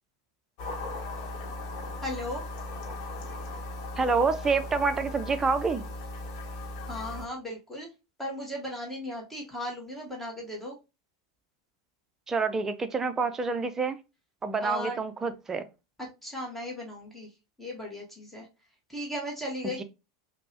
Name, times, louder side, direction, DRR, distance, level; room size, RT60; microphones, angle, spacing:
sound 1, 0.6-7.3, left 2 dB, 50° left, 1.0 m, -38 dB
voice 1, 2.0-2.4 6.9-7.9 8.2-10.8 14.6-15.0 16.0-17.3 17.6-18.5 18.9-19.8, left 1 dB, 5° left, 1.0 m, -36 dB
voice 2, 4.0-5.8 12.3-14.0 14.4-15.7, right 4 dB, 20° right, 0.5 m, -27 dB
5.1 x 2.1 x 2.7 m
figure-of-eight pair, 85°, 3 cm